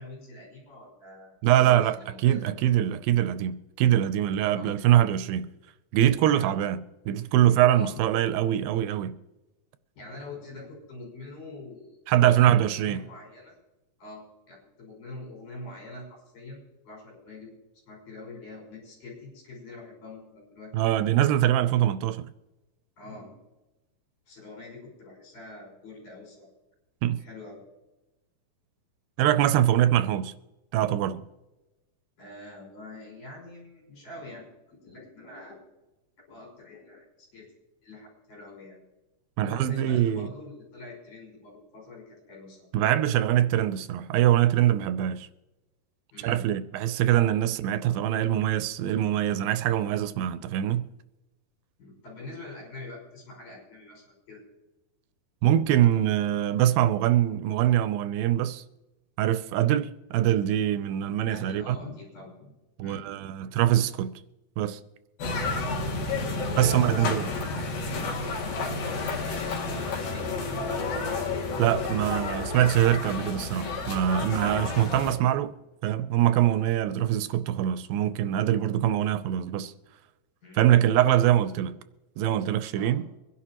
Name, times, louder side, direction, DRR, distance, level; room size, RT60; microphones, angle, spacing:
voice 1, 0.0-2.6 4.5-4.7 6.3-6.6 7.7-8.2 9.9-12.0 12.3-13.6 14.0-17.5 17.9-21.1 23.0-23.4 24.3-26.5 27.0-27.7 32.2-35.6 36.3-37.5 37.8-38.8 39.4-42.7 46.1-46.5 51.8-54.4 60.7-60.8 61.0-62.5 62.8-63.0 65.3-65.6 66.4-67.7 68.1-70.8 80.4-80.8 82.8-83.0, left 2 dB, 65° left, 7.3 m, -45 dB
voice 2, 1.4-2.0 2.2-5.5 5.9-6.8 7.1-9.2 12.1-13.0 20.7-22.3 27.0-27.2 29.2-30.3 30.7-31.2 39.4-40.3 42.7-45.3 46.2-50.9 55.4-58.6 59.2-61.8 62.8-64.1 64.6-64.8 66.6-67.3 71.6-75.5 75.8-79.7 80.6-81.7 82.2-83.1, right 12 dB, 90° right, 2.4 m, -23 dB
sound 1, 65.2-75.2, left 3 dB, 85° left, 4.0 m, -31 dB
24.0 x 11.0 x 3.0 m
omnidirectional pair, 4.0 m